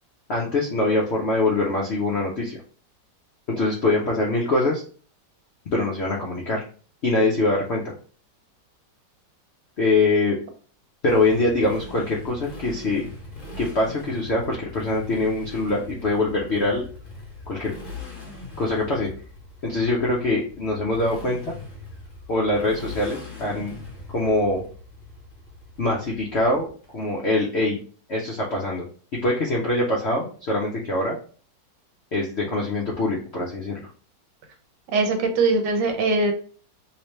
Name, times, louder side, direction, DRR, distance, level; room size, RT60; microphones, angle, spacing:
voice 1, 0.3-2.6 3.5-4.8 5.7-6.6 7.0-7.9 9.8-10.4 11.0-13.0 13.6-16.8 17.5-17.7 18.6-19.1 19.6-21.5 22.3-23.8 24.1-24.6 25.8-26.7 26.9-27.8 28.1-28.9 29.2-31.2 32.1-33.9, left 2 dB, 65° left, -2 dB, 0.6 m, -23 dB
Motorcycle, 11.1-26.9, left 2 dB, 35° left, 1.0 m, -41 dB
voice 2, 34.9-36.3, right 3 dB, 70° right, 5 dB, 1.3 m, -21 dB
3.2 x 3.1 x 3.1 m, 0.42 s
omnidirectional pair, 2.0 m